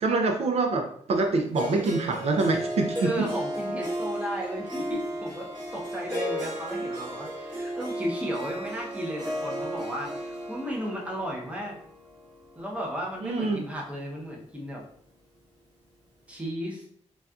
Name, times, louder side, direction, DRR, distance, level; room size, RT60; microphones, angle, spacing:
voice 1, 0.0-3.3 13.2-13.6, right 3 dB, 65° right, 3 dB, 0.4 m, -25 dB
Harp, 1.5-13.7, equal, 40° right, 1.2 m, -35 dB
voice 2, 3.0-11.7 12.6-14.8 16.3-16.9, equal, 10° right, -2 dB, 0.7 m, -34 dB
4.0 x 2.3 x 2.3 m, 0.63 s
wide cardioid pair, 145°, 12 cm